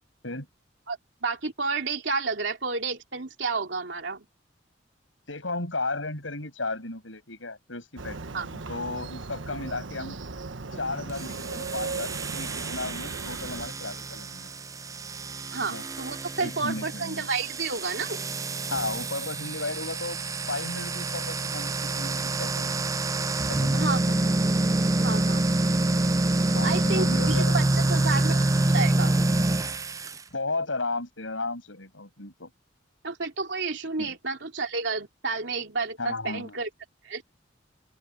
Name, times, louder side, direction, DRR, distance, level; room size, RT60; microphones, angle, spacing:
voice 1, 0.9-4.2 8.3-8.5 15.5-18.2 23.7-24.0 25.0-25.4 26.6-28.4 28.7-29.1 33.0-36.7 37.0-37.2, right 4 dB, 70° right, 3.2 m, -30 dB
voice 2, 5.3-10.2 10.7-14.5 15.6-15.8 16.4-17.3 18.7-20.2 20.5-22.9 23.5-24.3 26.5-27.6 30.3-32.5 34.0-34.1 36.0-36.6, left 3 dB, 90° left, 7.8 m, -34 dB
Motorcycle, 8.0-13.7, right 3 dB, 90° right, 1.3 m, -37 dB
sound 1, 11.1-30.2, right 2 dB, 15° right, 0.5 m, -27 dB
open air
head